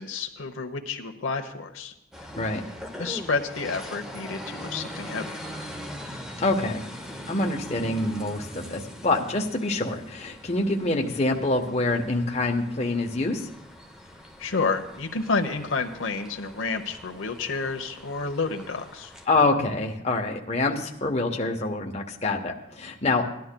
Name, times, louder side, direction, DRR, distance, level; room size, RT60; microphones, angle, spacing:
voice 1, 0.0-1.9 2.2-2.3 3.0-5.4 14.4-19.1, left 4 dB, 90° left, 5 dB, 0.9 m, -30 dB
sound 1, 2.1-19.3, equal, 5° right, 0.7 m, -41 dB
voice 2, 6.4-6.8 7.3-13.4 19.3-23.2, left 2 dB, 35° left, 1 dB, 0.9 m, -26 dB
18.5 x 11.5 x 2.2 m, 0.81 s
head